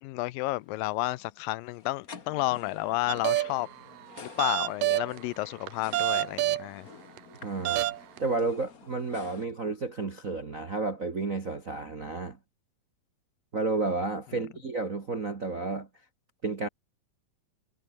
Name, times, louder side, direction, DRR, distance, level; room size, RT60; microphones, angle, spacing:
voice 1, 0.0-3.7 4.2-6.9, left 18 dB, 80° left, 2.3 m, -31 dB
sound 1, 0.6-9.5, left 6 dB, 35° left, 1.5 m, -50 dB
sound 2, 3.1-3.7 4.2-5.2 5.7-6.7 7.2-7.3 7.7-8.2, right 15 dB, 75° right, 2.5 m, -27 dB
voice 2, 7.4-7.9 8.2-12.4 13.5-15.9 16.4-16.7, right 3 dB, 40° right, 1.1 m, -31 dB
omnidirectional pair, 4.1 m